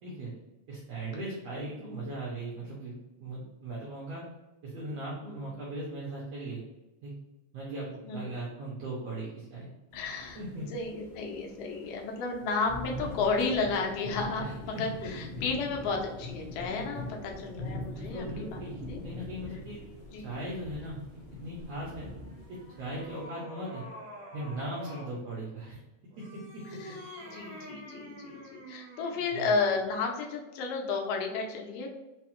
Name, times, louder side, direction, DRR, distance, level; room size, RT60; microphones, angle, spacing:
voice 1, 0.0-0.3 0.7-4.2 4.6-6.6 7.0-7.1 7.5-9.7 10.3-10.6 12.9-13.1 14.4-15.1 17.9-19.8 20.2-21.0 21.3-22.1 22.5-23.8 24.3-25.8 26.5-26.6 29.3-29.5, right 1 dB, 85° right, -5 dB, 1.4 m, -39 dB
voice 2, 9.9-18.3 18.5-18.6 18.9-19.0 20.1-20.2 26.7-31.9, left 4 dB, 90° left, 1 dB, 2.4 m, -32 dB
sound 1, 9.9-23.2, left 2 dB, 65° left, 0.8 m, -43 dB
sound 2, 22.2-25.2 26.1-29.3, right 1 dB, 70° right, 2.2 m, -47 dB
5.4 x 2.0 x 2.9 m, 1.0 s
omnidirectional pair, 3.8 m